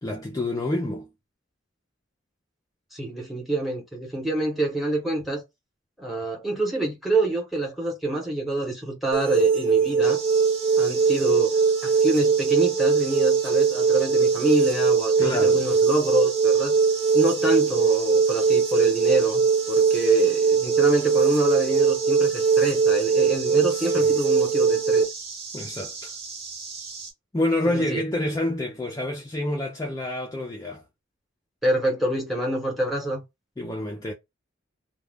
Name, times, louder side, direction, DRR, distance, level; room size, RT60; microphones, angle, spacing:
voice 1, 0.0-1.1 15.2-15.6 23.5-24.2 25.5-26.1 27.3-30.8 33.6-34.1, left 1 dB, 20° left, 0.3 m, -28 dB
voice 2, 2.9-5.4 6.0-10.2 10.8-11.6 11.8-16.7 17.1-25.2 27.7-28.0 31.6-33.2, right 2 dB, ahead, 0.9 m, -26 dB
sound 1, 9.1-25.0, right 5 dB, 90° right, 0.5 m, -21 dB
sound 2, 10.0-27.1, right 4 dB, 55° right, 1.0 m, -37 dB
2.3 x 2.1 x 3.3 m
head